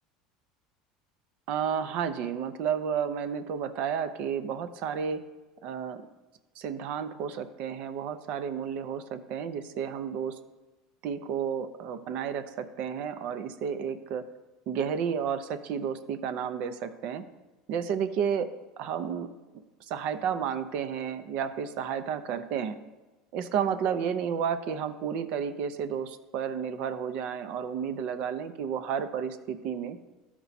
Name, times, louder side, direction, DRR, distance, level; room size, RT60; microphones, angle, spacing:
voice 1, 1.5-5.2 5.6-6.0 6.6-10.4 11.0-14.2 14.7-17.2 17.7-18.5 18.8-19.3 19.9-22.8 23.3-30.0, right 7 dB, 60° right, 10 dB, 0.6 m, -31 dB
13.0 x 4.6 x 4.1 m, 1.2 s
supercardioid pair, 95°, 2 cm